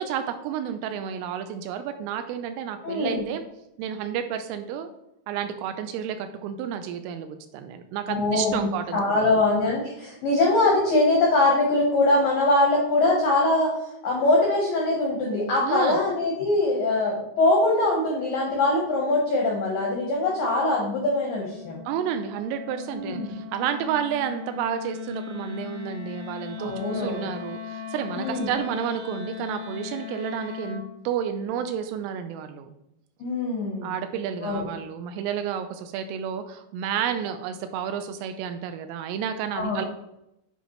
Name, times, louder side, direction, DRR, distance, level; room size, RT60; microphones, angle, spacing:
voice 1, 0.0-3.4 3.8-4.9 5.3-9.3 15.6-16.0 21.9-32.7 33.8-39.9, right 8 dB, 85° right, 8 dB, 2.9 m, -31 dB
voice 2, 2.8-3.2 8.1-13.8 14.0-21.8 22.9-23.3 26.6-27.3 28.1-28.5 33.2-33.9 34.4-34.7 39.5-39.8, left 2 dB, 85° left, -2 dB, 1.9 m, -23 dB
Wind instrument woodwind instrument, 19.4-30.9, left 8 dB, 70° right, 4.0 m, -39 dB
10.0 x 5.1 x 3.1 m, 0.83 s
omnidirectional pair, 6.0 m